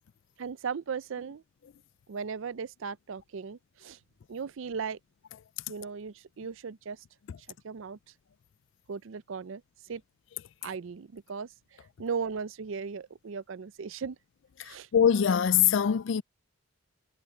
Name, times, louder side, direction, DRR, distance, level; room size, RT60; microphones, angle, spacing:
voice 1, 0.4-1.4 2.1-4.0 4.3-5.0 5.7-7.0 7.6-8.0 8.9-9.6 9.9-10.0 10.6-11.5 12.0-14.2 14.6-14.9, right 5 dB, 65° right, 0.4 m, -37 dB
voice 2, 14.9-16.2, left 8 dB, 60° left, 0.3 m, -22 dB
head